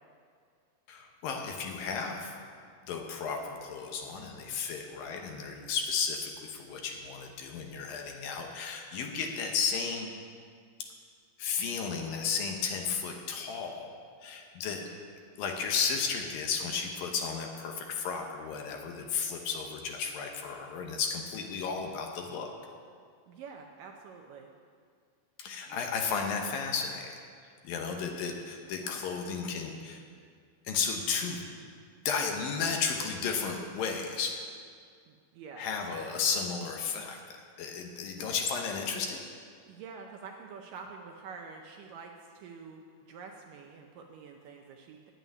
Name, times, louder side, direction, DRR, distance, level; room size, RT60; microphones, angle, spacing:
voice 1, 0.9-2.3 2.9-10.1 11.4-14.8 15.4-22.5 25.4-27.2 27.6-30.0 30.7-31.4 32.1-34.4 35.6-39.2, left 5 dB, 70° left, 2 dB, 2.6 m, -33 dB
voice 2, 14.7-15.0 23.3-24.5 25.7-25.9 35.1-35.7 39.7-45.1, right 5 dB, 75° right, 2 dB, 2.1 m, -47 dB
9.4 x 9.0 x 9.3 m, 2.1 s
omnidirectional pair, 4.5 m